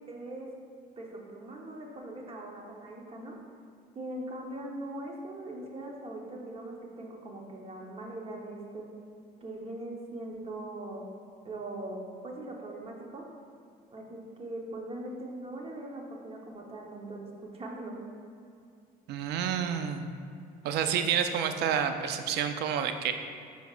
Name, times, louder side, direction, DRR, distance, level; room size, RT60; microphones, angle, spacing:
voice 1, 0.1-0.5 1.0-3.4 3.9-8.9 9.4-11.0 11.4-13.2 13.9-17.3 17.5-18.0, right 1 dB, 35° right, -1 dB, 1.1 m, -41 dB
voice 2, 19.1-20.1 20.6-23.1, right 8 dB, 80° right, 8 dB, 0.5 m, -29 dB
9.3 x 5.1 x 2.5 m, 2.4 s
cardioid pair, 110°, 17 cm